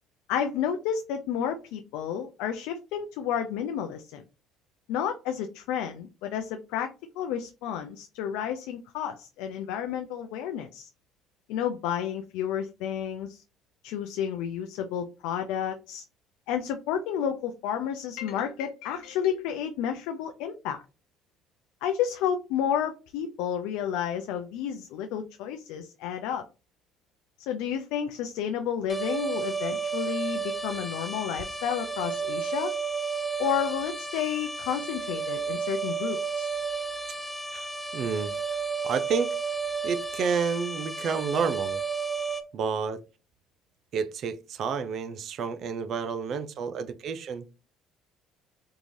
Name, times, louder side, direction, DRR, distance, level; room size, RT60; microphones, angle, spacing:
voice 1, 0.3-4.2 4.9-10.9 11.5-13.4 13.8-16.0 16.5-20.8 21.8-26.4 27.5-32.7 33.4-36.6, left 9 dB, 85° left, 0.3 m, -31 dB
sound 1, 28.9-42.4, right 5 dB, ahead, 0.6 m, -32 dB
voice 2, 37.9-38.4 38.8-39.4 39.8-41.8 42.5-43.0 43.9-47.5, right 6 dB, 55° right, 0.4 m, -30 dB
3.5 x 2.5 x 3.1 m
cardioid pair, 95°, 0 cm